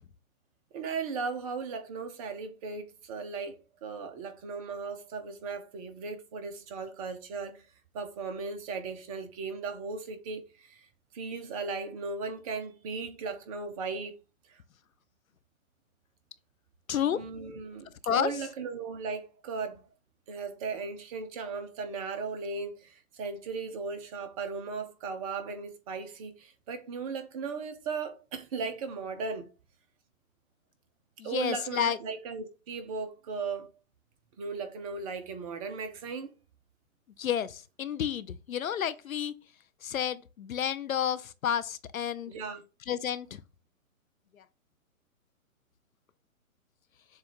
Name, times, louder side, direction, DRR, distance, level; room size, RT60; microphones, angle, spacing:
voice 1, 0.7-7.6 7.9-10.9 11.1-14.2 14.5-14.6 17.1-19.8 20.3-29.5 31.2-33.7 34.4-36.3 42.3-42.6, right 4 dB, 25° right, 0.8 m, -37 dB
voice 2, 16.9-17.3 18.1-18.3 31.2-32.0 37.2-39.3 39.8-42.3 42.9-43.4, left 9 dB, 75° left, 0.7 m, -30 dB
7.2 x 2.5 x 5.2 m
figure-of-eight pair, 130°, 42 cm